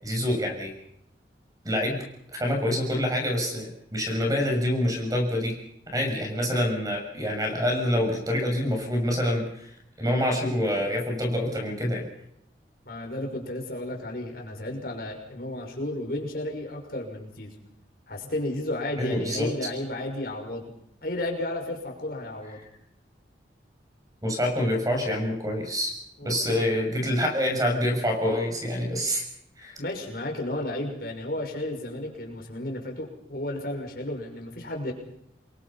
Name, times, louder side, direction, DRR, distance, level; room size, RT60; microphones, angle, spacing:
voice 1, 0.0-0.7 1.6-2.0 2.3-5.5 5.9-9.7 10.0-12.1 19.0-19.5 24.2-25.9 26.2-29.2 29.6-29.8, left 1 dB, 20° right, 3 dB, 6.7 m, -26 dB
voice 2, 12.9-17.5 18.1-20.7 21.0-22.6 26.2-26.7 29.8-34.9, left 1 dB, 55° left, 1 dB, 6.0 m, -33 dB
28.0 x 22.5 x 5.7 m, 0.75 s
head